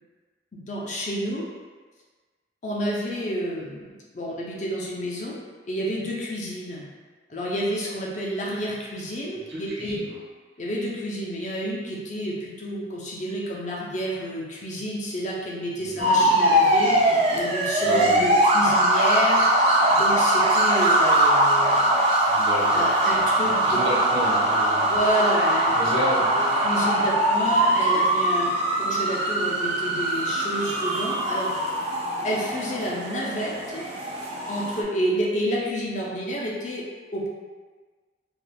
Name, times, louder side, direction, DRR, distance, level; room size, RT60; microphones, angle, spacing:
voice 1, 0.5-1.4 2.6-5.4 5.6-6.8 7.3-10.0 10.6-19.5 19.9-22.3 22.7-23.8 24.9-25.7 26.6-31.5 32.2-33.8 34.5-36.8 37.1-37.3, equal, 40° left, -4 dB, 0.5 m, -29 dB
voice 2, 9.5-10.2 15.8-16.3 17.8-18.2 22.3-24.9 25.7-26.8, right 1 dB, 85° right, -7 dB, 1.0 m, -32 dB
sound 1, 16.0-34.8, right 1 dB, 35° right, 0.4 m, -21 dB
2.4 x 2.3 x 3.2 m, 1.4 s
head